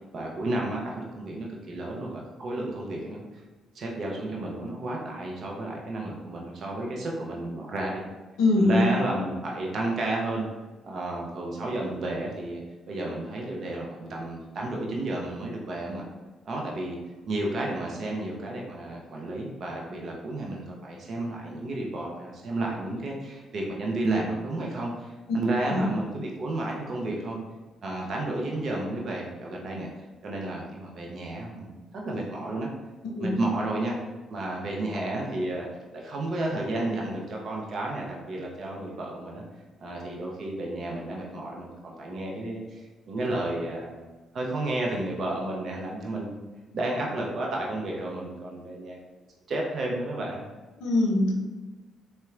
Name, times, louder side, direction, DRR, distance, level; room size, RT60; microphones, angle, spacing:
voice 1, 0.1-3.4 3.7-8.0 8.6-10.5 10.8-16.0 16.5-17.0 17.3-27.4 27.8-29.9 30.2-32.7 33.2-34.0 34.3-35.7 35.9-39.4 39.8-44.0 44.3-46.4 46.7-49.0 49.5-50.4, right 2 dB, 55° right, -2 dB, 0.6 m, -32 dB
voice 2, 8.4-8.9 25.7-25.9 33.2-33.3 50.8-51.3, left 2 dB, 75° left, 0 dB, 0.5 m, -22 dB
4.0 x 2.2 x 2.4 m, 1.2 s
hypercardioid pair, 50°, 0 cm